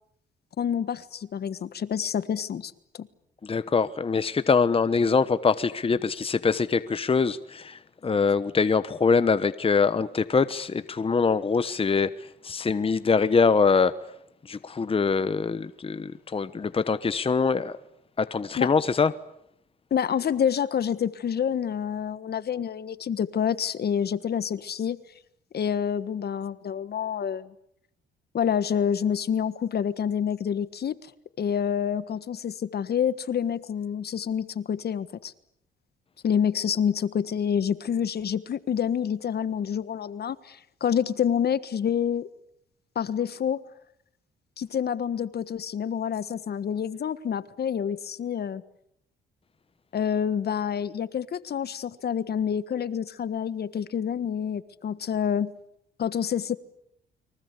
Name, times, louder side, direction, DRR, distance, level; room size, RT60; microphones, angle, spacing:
voice 1, 0.6-2.7 3.0-3.1 18.6-18.7 19.9-25.0 25.5-27.5 28.3-31.1 31.4-35.3 36.2-42.3 42.9-43.6 44.6-48.6 49.9-55.5 56.0-56.6, left 8 dB, 55° left, 15 dB, 1.5 m, -27 dB
voice 2, 3.4-12.1 12.4-13.9 14.5-17.8 18.2-19.1, left 5 dB, 30° left, 13 dB, 1.1 m, -23 dB
29.5 x 23.5 x 8.4 m, 0.75 s
cardioid pair, 90°, 20 cm